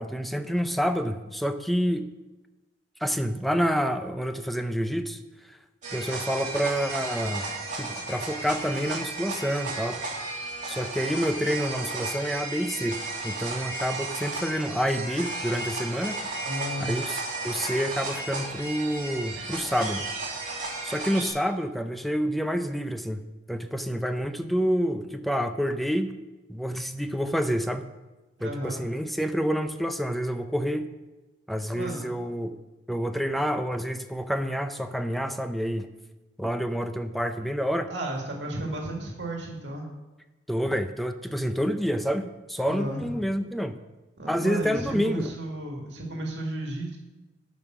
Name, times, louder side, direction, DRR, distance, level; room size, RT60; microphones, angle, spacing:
voice 1, 0.0-2.1 3.0-5.2 5.5-5.6 5.9-7.5 7.8-10.0 10.7-16.2 16.8-20.1 20.8-26.2 26.5-27.9 28.4-30.9 31.5-32.6 32.9-35.9 36.4-37.9 40.5-43.8 44.3-45.3, equal, ahead, 8 dB, 0.6 m, -28 dB
sound 1, 5.8-21.3, right 3 dB, 40° right, 2.9 m, -34 dB
voice 2, 16.4-16.9 28.4-28.8 31.7-32.0 37.9-39.9 42.6-43.0 44.2-47.0, right 1 dB, 80° right, 0 dB, 2.0 m, -33 dB
12.5 x 5.5 x 6.0 m, 1.1 s
head